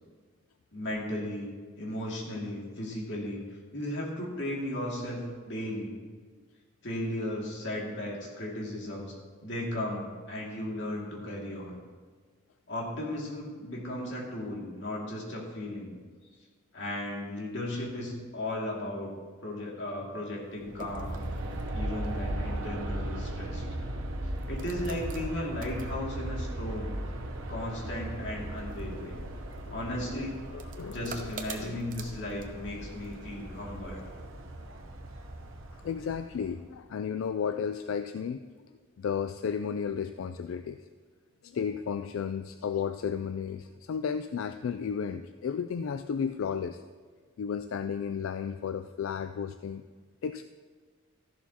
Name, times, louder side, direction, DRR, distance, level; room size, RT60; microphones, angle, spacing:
voice 1, 0.7-1.5 1.8-3.4 3.7-5.9 6.8-9.1 9.4-11.8 12.7-16.0 16.7-19.1 19.4-21.2 21.7-23.6 24.5-26.9 27.5-29.2 29.7-30.3 30.9-34.0, left 1 dB, 60° left, -3 dB, 2.3 m, -35 dB
sound 1, 20.4-33.5, right 5 dB, 45° right, 0.8 m, -50 dB
Aircraft, 20.6-36.7, right 1 dB, 90° right, 0.9 m, -37 dB
voice 2, 29.6-31.8 35.7-38.4 39.0-40.8 41.4-46.8 47.4-49.8 50.2-50.4, left 7 dB, 90° left, 10 dB, 0.3 m, -34 dB
13.5 x 11.5 x 2.9 m, 1.5 s
head